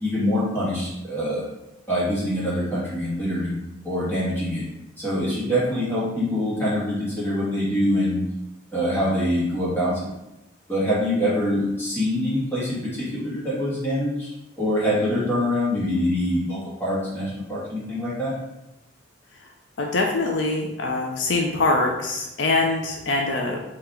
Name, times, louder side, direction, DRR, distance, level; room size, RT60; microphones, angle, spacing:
voice 1, 0.0-1.4 1.9-3.6 3.8-4.6 5.0-8.2 8.7-10.0 10.7-14.3 14.6-18.3, equal, 10° left, -9 dB, 1.6 m, -24 dB
voice 2, 19.8-23.6, left 2 dB, 65° left, 1 dB, 0.5 m, -23 dB
3.7 x 2.9 x 4.3 m, 0.92 s
head